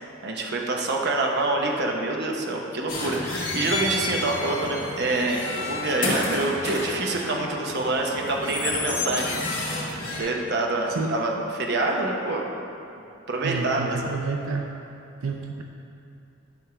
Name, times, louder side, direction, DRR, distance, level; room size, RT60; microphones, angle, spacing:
voice 1, 0.0-9.4 10.1-12.4 13.3-14.0, right 2 dB, 55° right, 0 dB, 0.9 m, -26 dB
sound 1, 2.9-10.2, left 2 dB, 40° left, 1.9 m, -30 dB
voice 2, 10.9-11.2 13.4-14.7 15.2-15.6, right 4 dB, 90° right, 2 dB, 0.5 m, -29 dB
10.5 x 3.5 x 6.0 m, 2.7 s
head